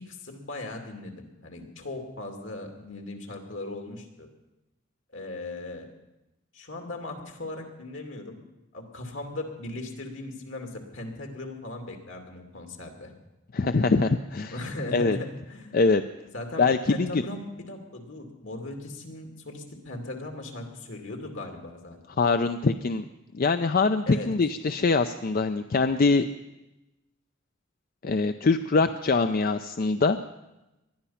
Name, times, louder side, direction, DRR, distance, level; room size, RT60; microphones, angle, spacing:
voice 1, 0.1-4.3 5.1-5.9 6.5-8.4 8.7-13.1 14.5-15.8 16.3-22.0 24.1-24.3, left 2 dB, 75° left, 3 dB, 2.6 m, -38 dB
voice 2, 13.5-14.5 14.9-15.2 15.7-16.0 16.6-17.2 22.2-23.0 23.3-26.2 28.0-30.2, left 3 dB, 45° left, 9 dB, 0.5 m, -23 dB
20.0 x 12.5 x 5.8 m, 0.98 s
head